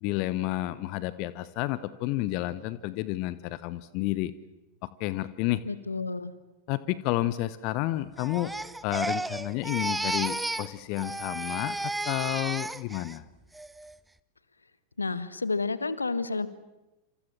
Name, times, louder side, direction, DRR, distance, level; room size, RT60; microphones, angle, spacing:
voice 1, 0.0-4.3 4.8-5.6 6.7-8.5 8.8-13.2, left 16 dB, 45° left, 17 dB, 1.0 m, -30 dB
voice 2, 5.6-6.3 15.0-16.5, left 3 dB, 80° left, 15 dB, 1.4 m, -30 dB
Crying sobbing, 8.2-10.7 11.0-13.2 13.5-13.9, right 2 dB, 5° right, 1.0 m, -33 dB
28.0 x 27.5 x 7.4 m, 1.0 s
figure-of-eight pair, 90°, 0 cm